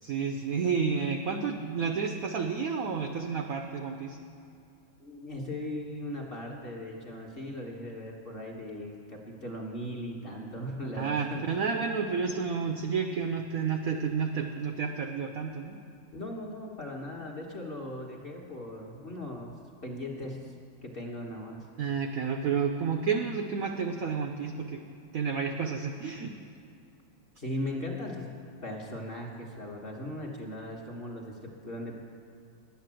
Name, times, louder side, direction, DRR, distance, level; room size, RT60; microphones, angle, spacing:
voice 1, 0.0-4.2 11.0-15.8 21.8-24.8 25.1-26.3, right 5 dB, 70° right, 4 dB, 0.8 m, -30 dB
voice 2, 5.0-11.5 16.1-20.5 20.8-21.6 27.4-32.0, left 1 dB, 35° left, -2 dB, 1.1 m, -38 dB
10.5 x 8.5 x 7.5 m, 2.6 s
omnidirectional pair, 2.2 m